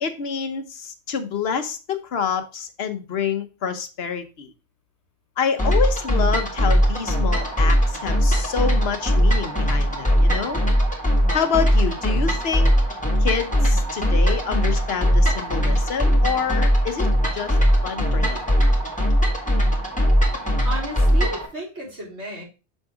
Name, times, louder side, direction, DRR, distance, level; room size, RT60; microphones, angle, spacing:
voice 1, 0.0-4.5 5.4-10.6 11.3-12.7 13.2-17.1 17.3-17.6 17.8-18.4, left 6 dB, 70° left, 1.0 m, -27 dB
sound 1, 5.6-21.5, equal, 5° left, 1.8 m, -20 dB
voice 2, 20.6-22.4, right 1 dB, 85° right, 3.3 m, -33 dB
6.6 x 3.6 x 4.7 m
omnidirectional pair, 1.1 m